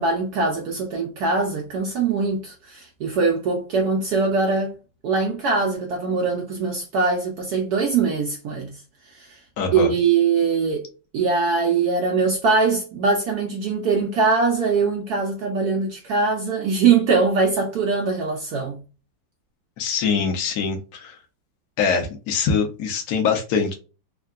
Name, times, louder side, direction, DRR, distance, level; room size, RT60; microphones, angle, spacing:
voice 1, 0.0-4.8 5.0-9.4 9.7-10.9 11.1-18.8, right 4 dB, 70° right, 1.0 m, -22 dB
voice 2, 9.6-9.9 19.8-21.1 21.8-23.7, left 6 dB, 65° left, 1.2 m, -23 dB
3.5 x 2.2 x 2.3 m
omnidirectional pair, 2.0 m